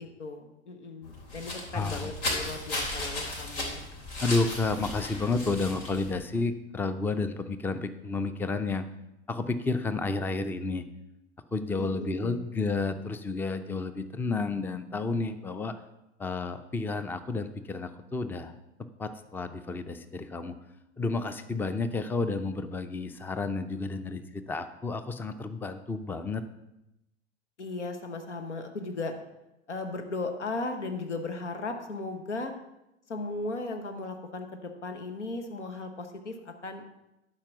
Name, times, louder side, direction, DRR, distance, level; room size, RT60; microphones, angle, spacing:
voice 1, 0.0-3.8 11.8-12.5 27.6-29.1 29.7-32.5 33.1-36.8, left 3 dB, 90° left, 6 dB, 1.1 m, -36 dB
sound 1, 1.0-6.2, left 2 dB, 60° left, 3.2 m, -35 dB
voice 2, 1.7-2.1 4.2-8.9 9.3-10.9 11.5-15.7 16.2-18.5 19.0-20.6 21.0-26.4, left 3 dB, 5° left, 11 dB, 0.5 m, -31 dB
11.5 x 4.8 x 6.0 m, 0.92 s
hypercardioid pair, 90°, 34 cm